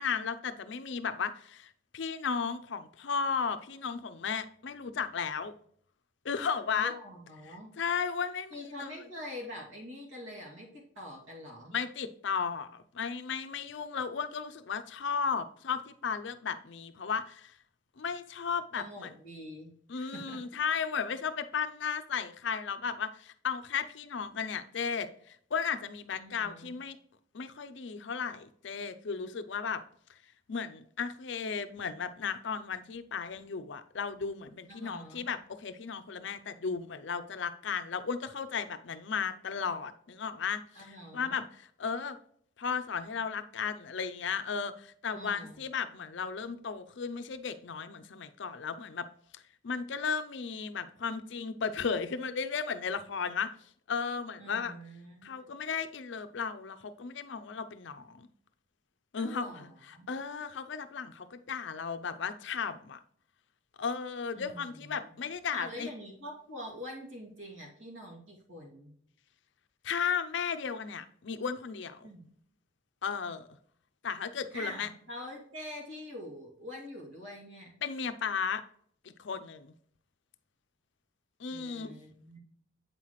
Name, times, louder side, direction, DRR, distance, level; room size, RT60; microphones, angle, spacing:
voice 1, 0.0-5.5 6.2-6.9 7.8-8.9 11.7-17.6 18.0-19.1 19.9-27.0 27.3-29.8 30.1-30.2 30.5-42.2 42.6-49.1 49.3-53.5 53.9-54.7 55.2-58.3 59.1-63.0 63.8-65.9 69.8-72.1 73.0-73.5 74.0-74.9 77.8-78.6 79.0-79.7 81.4-82.0, left 6 dB, 60° left, 0.5 m, -35 dB
voice 2, 6.7-7.8 8.5-11.8 18.7-20.4 26.1-26.8 34.7-35.3 40.7-41.4 45.1-45.6 54.4-55.5 59.2-60.1 64.3-65.1 65.5-68.9 72.0-72.2 74.5-77.7 81.5-82.4, left 1 dB, 75° right, 2.4 m, -45 dB
8.2 x 5.7 x 3.1 m
head